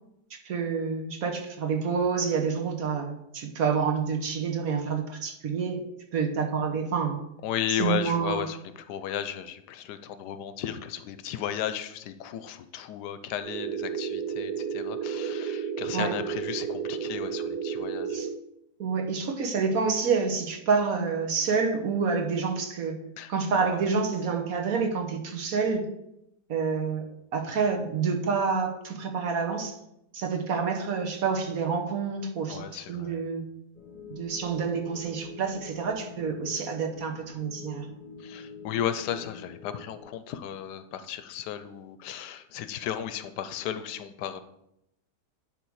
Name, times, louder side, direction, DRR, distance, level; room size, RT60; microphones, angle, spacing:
voice 1, 0.4-5.8 6.1-7.2 7.8-8.5 15.9-16.1 18.1-18.3 18.8-23.0 23.3-25.9 26.5-27.0 27.3-29.8 30.1-33.4 34.1-37.9, right 5 dB, 60° right, 3 dB, 1.4 m, -28 dB
voice 2, 7.4-18.2 23.2-23.9 32.5-33.2 38.2-44.4, left 10 dB, 85° left, 11 dB, 1.2 m, -34 dB
sound 1, 13.4-18.4, right 7 dB, 80° right, 1.1 m, -32 dB
sound 2, 33.7-40.0, left 5 dB, 30° left, 1.1 m, -46 dB
10.0 x 3.6 x 4.7 m, 0.82 s
omnidirectional pair, 1.7 m